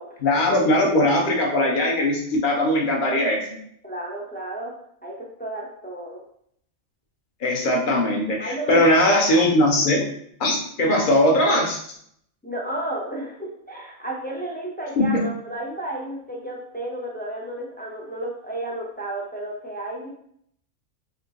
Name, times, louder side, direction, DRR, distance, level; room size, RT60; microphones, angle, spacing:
voice 1, 0.2-3.4 7.4-10.0 10.4-11.8 15.0-15.2, left 1 dB, 40° left, 0 dB, 0.9 m, -20 dB
voice 2, 3.8-4.7 5.0-6.2 8.4-8.8 9.3-9.4 12.4-20.1, right 1 dB, 15° left, -3 dB, 0.3 m, -32 dB
3.7 x 2.8 x 3.6 m, 0.67 s
omnidirectional pair, 1.4 m